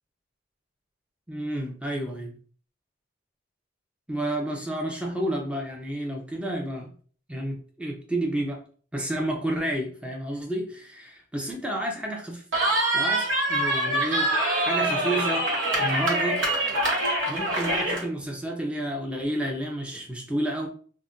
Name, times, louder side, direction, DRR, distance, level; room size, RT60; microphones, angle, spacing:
voice 1, 1.3-2.3 4.1-6.9 7.3-8.6 8.9-12.4 12.9-14.3 14.7-15.5 15.8-16.5 17.3-20.7, right 1 dB, 5° right, 0 dB, 0.5 m, -30 dB
Cheering, 12.5-18.0, right 1 dB, 80° right, 0.9 m, -24 dB
2.4 x 2.1 x 3.7 m, 0.44 s
head